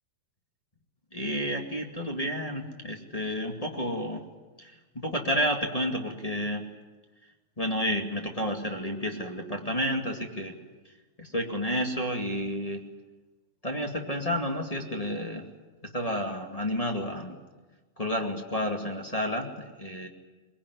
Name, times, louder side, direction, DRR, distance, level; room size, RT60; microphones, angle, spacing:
voice 1, 1.1-4.2 4.6-6.6 7.6-10.5 11.2-12.8 13.6-15.4 15.9-17.3 18.0-20.1, equal, 15° left, 1 dB, 1.2 m, -30 dB
22.5 x 21.5 x 9.7 m, 1.3 s
omnidirectional pair, 4.4 m